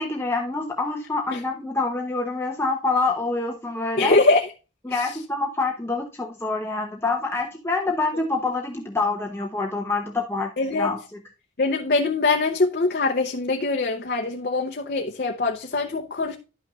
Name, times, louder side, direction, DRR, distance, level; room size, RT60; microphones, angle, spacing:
voice 1, 0.0-4.2 4.8-11.2, left 3 dB, 10° left, 0.7 m, -26 dB
voice 2, 4.0-4.4 10.6-10.9 11.6-16.4, left 3 dB, 50° left, 0.7 m, -22 dB
11.5 x 5.8 x 2.4 m
head